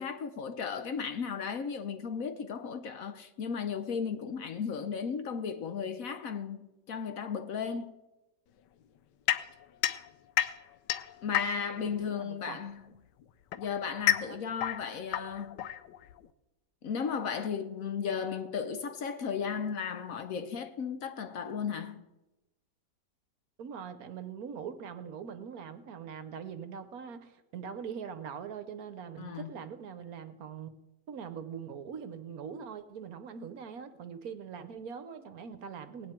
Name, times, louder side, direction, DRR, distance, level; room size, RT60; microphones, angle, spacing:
voice 1, 0.0-7.9 11.2-12.8 13.6-15.6 16.8-22.0 29.2-29.5, left 6 dB, 60° left, 1.1 m, -35 dB
sound 1, 9.3-11.9 12.9-16.3, left 13 dB, 85° left, 1.3 m, -32 dB
voice 2, 11.7-12.6 14.3-14.4 23.6-30.7 31.1-36.1, right 7 dB, 65° right, 1.2 m, -42 dB
18.5 x 9.4 x 4.4 m
omnidirectional pair, 1.8 m